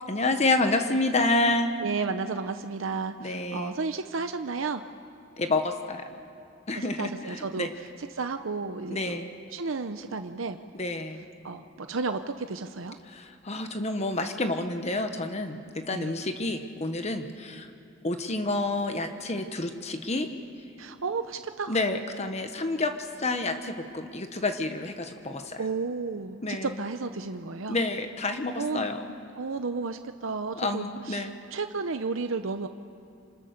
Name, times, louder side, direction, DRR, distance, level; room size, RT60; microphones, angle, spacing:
voice 1, 0.1-1.7 3.2-3.7 5.4-6.0 6.7-7.7 8.9-9.3 10.7-11.3 13.0-17.7 18.0-20.3 21.7-25.7 26.4-26.8 27.7-29.1 30.5-31.3, left 2 dB, 35° left, 7 dB, 1.2 m, -29 dB
voice 2, 1.8-4.8 6.8-7.7 8.1-9.2 9.5-10.6 11.4-13.0 15.9-16.1 20.8-21.8 25.6-27.8 28.6-28.9 29.4-32.7, right 4 dB, 90° right, 8 dB, 0.8 m, -32 dB
28.0 x 26.5 x 6.7 m, 2.6 s
head